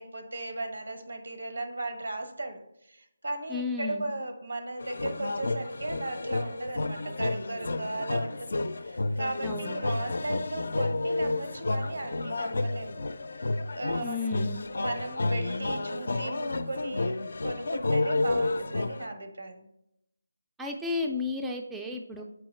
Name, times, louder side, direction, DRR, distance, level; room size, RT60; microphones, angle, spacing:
voice 1, 0.0-2.6 2.9-13.1 13.4-14.2 14.8-19.7 22.2-22.3, right 2 dB, 80° right, 7 dB, 1.0 m, -36 dB
voice 2, 3.5-4.1 9.4-9.8 14.0-14.7 20.6-22.2, left 3 dB, 5° right, 1 dB, 0.3 m, -33 dB
sound 1, 4.8-19.1, left 2 dB, 65° left, 0.4 m, -31 dB
7.0 x 4.6 x 3.1 m, 0.81 s
figure-of-eight pair, 165°, 0 cm